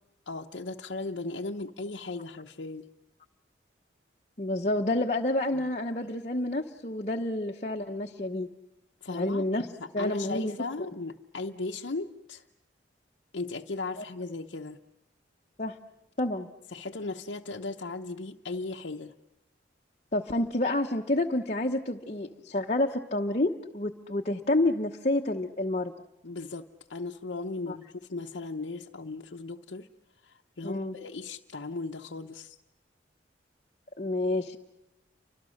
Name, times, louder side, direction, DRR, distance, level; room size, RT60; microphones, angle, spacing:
voice 1, 0.3-2.9 5.5-5.6 9.0-9.5 9.8-12.4 13.3-14.8 16.7-19.1 26.2-29.9 30.2-32.6, left 3 dB, 75° left, 1 dB, 0.8 m, -37 dB
voice 2, 4.4-8.5 9.1-9.7 9.9-10.6 14.0-14.1 15.6-15.8 16.2-16.5 20.1-25.9 27.7-27.8 30.6-30.9 34.0-34.6, left 1 dB, 40° left, 2 dB, 0.9 m, -29 dB
30.0 x 25.0 x 6.5 m, 0.89 s
head